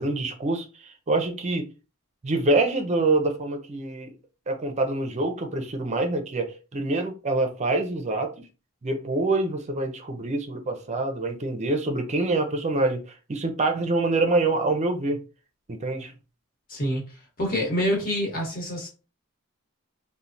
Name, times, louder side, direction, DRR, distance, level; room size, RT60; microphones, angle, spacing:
voice 1, 0.0-1.7 2.2-4.1 4.5-8.3 8.8-13.0 13.3-15.2 15.7-16.1, right 2 dB, 30° right, 0.5 m, -25 dB
voice 2, 16.7-17.0 17.4-18.9, equal, 40° left, 1.1 m, -26 dB
3.0 x 2.1 x 2.6 m
head